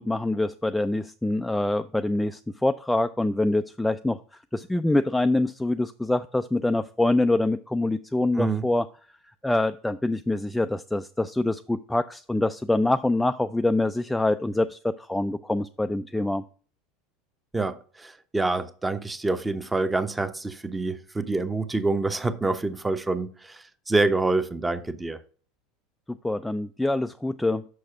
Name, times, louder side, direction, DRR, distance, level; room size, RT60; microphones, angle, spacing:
voice 1, 0.0-4.2 4.5-8.9 9.4-16.4 26.1-27.6, left 2 dB, 5° left, 0.3 m, -25 dB
voice 2, 17.5-25.2, right 3 dB, 10° right, 0.8 m, -27 dB
6.4 x 6.1 x 5.8 m
figure-of-eight pair, 75°, 0 cm